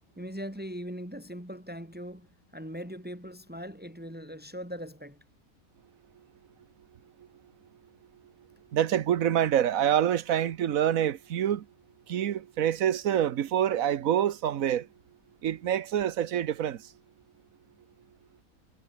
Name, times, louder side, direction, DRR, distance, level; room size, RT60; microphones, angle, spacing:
voice 1, 0.2-5.2, equal, 5° right, 4.0 m, -40 dB
voice 2, 8.7-11.7 12.1-14.9 15.4-16.8, right 10 dB, 70° right, 1.3 m, -26 dB
omnidirectional pair, 1.5 m